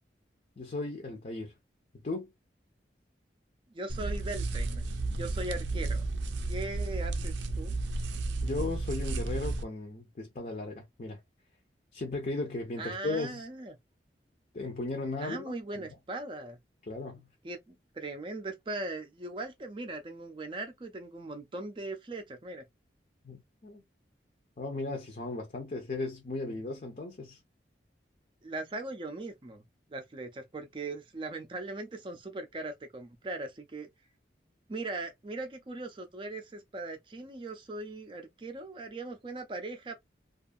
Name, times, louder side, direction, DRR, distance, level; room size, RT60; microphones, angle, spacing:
voice 1, 0.6-1.5 2.0-2.3 8.4-11.2 11.9-13.4 14.5-15.9 16.9-17.3 23.2-23.8 24.6-27.4, left 2 dB, 45° left, 0.6 m, -36 dB
voice 2, 3.7-4.9 5.1-6.1 6.5-7.8 12.8-13.7 15.2-16.6 17.4-22.6 28.4-29.6 29.9-33.9 34.7-39.9, right 2 dB, 30° right, 0.4 m, -39 dB
sound 1, 3.9-9.6, right 2 dB, 90° right, 0.4 m, -33 dB
2.5 x 2.4 x 2.4 m
head